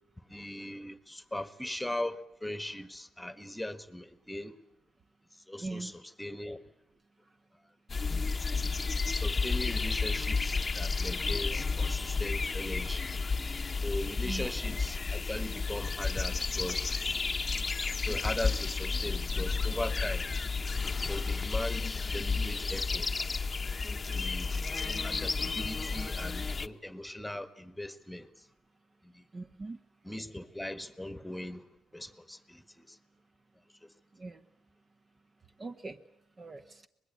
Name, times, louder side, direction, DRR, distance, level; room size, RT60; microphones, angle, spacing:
voice 1, 0.3-4.5 5.5-6.6 9.1-13.1 13.8-17.0 18.0-20.3 21.1-23.3 24.1-24.7 25.0-28.5 29.0-29.2 30.0-31.6 31.9-33.0 33.8-33.9, left 1 dB, 5° left, 1.5 m, -39 dB
voice 2, 5.6-5.9 14.2-14.5 29.3-29.8 34.1-34.4 35.6-36.0 36.4-36.8, right 3 dB, 30° right, 1.1 m, -41 dB
sound 1, 7.9-26.7, left 4 dB, 30° left, 0.9 m, -32 dB
24.0 x 20.5 x 8.4 m
cardioid pair, 90°, 0 cm